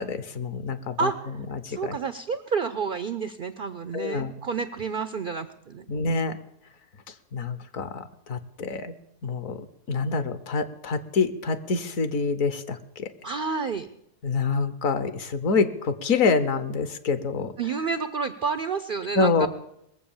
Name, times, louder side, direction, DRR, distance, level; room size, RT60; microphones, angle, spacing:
voice 1, 0.0-1.1 1.6-2.0 3.9-4.3 5.9-6.4 7.3-8.9 9.2-9.6 9.9-13.1 14.2-17.5 19.2-19.5, left 4 dB, 60° left, 12 dB, 1.2 m, -26 dB
voice 2, 1.0-5.9 13.2-13.9 17.6-19.5, right 5 dB, 80° right, 12 dB, 0.4 m, -30 dB
20.5 x 7.6 x 7.1 m, 0.76 s
omnidirectional pair, 1.7 m